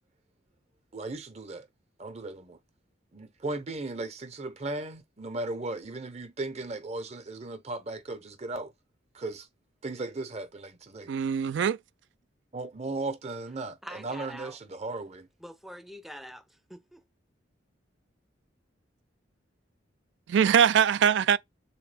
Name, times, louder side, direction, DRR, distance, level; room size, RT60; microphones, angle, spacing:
voice 1, 0.9-1.7 2.0-2.6 3.1-8.7 9.1-9.5 9.8-11.1 12.5-15.3, right 2 dB, 35° right, 0.7 m, -36 dB
voice 2, 11.1-11.8 20.3-21.4, right 8 dB, 65° right, 0.3 m, -22 dB
voice 3, 13.8-14.6 15.4-17.1, equal, ahead, 0.4 m, -45 dB
3.6 x 2.9 x 3.3 m
head